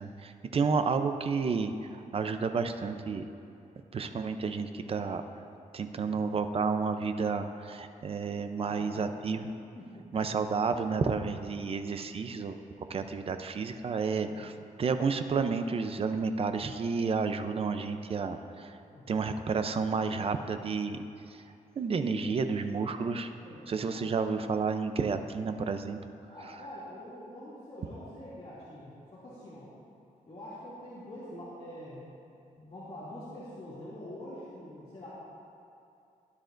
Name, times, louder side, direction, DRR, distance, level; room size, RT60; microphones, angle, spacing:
voice 1, 0.0-3.2 3.9-5.2 5.7-9.5 10.1-12.6 12.9-14.5 14.8-18.8 19.1-21.4 21.8-23.3 23.7-26.0 26.4-26.7, right 5 dB, 45° right, 8 dB, 0.6 m, -31 dB
voice 2, 8.6-9.2 9.7-10.1 14.2-14.4 18.9-19.2 23.4-23.6 23.9-24.0 26.3-29.7 30.3-32.1 32.6-35.1, left 1 dB, 40° left, -11 dB, 2.5 m, -45 dB
17.0 x 9.7 x 2.6 m, 2.6 s
wide cardioid pair, 140°, 14 cm